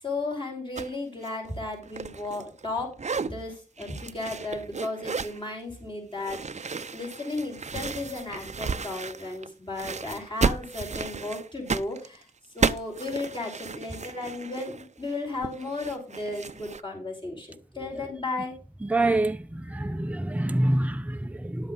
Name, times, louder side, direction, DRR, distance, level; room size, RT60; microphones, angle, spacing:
voice 1, 0.0-3.0 3.2-12.3 12.5-18.6, left 2 dB, 35° left, 5.3 m, -34 dB
sound 1, 0.8-0.9 1.2-2.7 2.9-3.3 3.8-5.4 6.2-9.5 9.7-16.8, right 5 dB, 50° right, 0.6 m, -33 dB
voice 2, 18.8-21.7, right 1 dB, 10° right, 0.6 m, -26 dB
11.0 x 7.8 x 4.0 m
wide cardioid pair, 55°, 15 cm